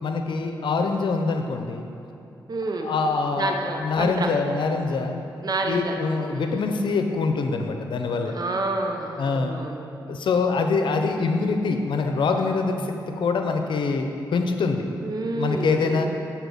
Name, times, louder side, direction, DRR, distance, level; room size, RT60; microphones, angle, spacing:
voice 1, 0.0-1.9 2.8-5.2 5.6-8.3 9.2-9.5 10.1-12.8 13.2-14.8 15.4-16.1, left 4 dB, 70° left, 5 dB, 0.7 m, -24 dB
voice 2, 2.5-2.9 3.4-4.3 5.4-6.0 6.3-6.6 8.3-9.8 15.0-16.1, right 2 dB, 50° right, 3 dB, 1.0 m, -29 dB
8.1 x 4.2 x 7.0 m, 2.8 s
supercardioid pair, 45°, 8 cm